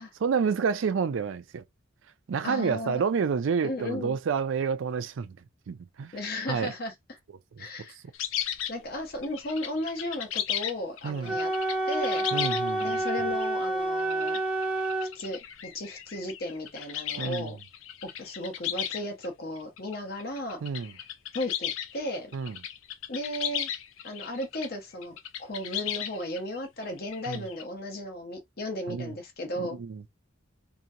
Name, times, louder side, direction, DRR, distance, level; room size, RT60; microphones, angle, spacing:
voice 1, 0.2-1.6 2.3-5.4 5.7-6.1 6.5-6.7 7.6-7.7 11.0-11.4 12.3-13.0 17.2-17.5 20.6-20.9 22.3-22.6 27.3-27.4 28.9-29.1 29.6-30.0, right 6 dB, 75° right, 0.4 m, -29 dB
voice 2, 2.4-3.0 3.6-4.2 6.1-6.9 7.6-8.0 8.7-11.5 11.9-12.3 12.8-14.4 15.1-17.6 18.0-20.6 21.3-22.4 23.1-23.7 24.0-29.8, left 1 dB, 50° left, 0.9 m, -35 dB
sound 1, 8.1-13.5 14.0-19.3 19.6-24.7 25.0-27.6, left 10 dB, 85° left, 0.4 m, -35 dB
Wind instrument woodwind instrument, 11.2-15.1, right 2 dB, 5° right, 0.5 m, -28 dB
2.9 x 2.7 x 2.5 m
head